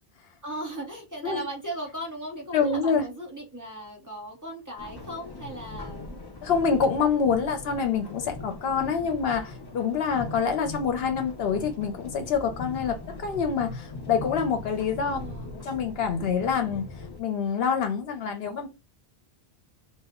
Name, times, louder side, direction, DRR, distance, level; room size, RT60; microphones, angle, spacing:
voice 1, 0.4-6.2 15.1-15.5, right 1 dB, 20° right, 0.8 m, -37 dB
voice 2, 2.5-3.1 6.4-15.2 15.6-16.9 17.2-18.7, left 6 dB, 75° left, 0.8 m, -26 dB
sound 1, 4.8-17.2, left 2 dB, 35° left, 0.4 m, -40 dB
2.1 x 2.0 x 3.4 m
omnidirectional pair, 1.0 m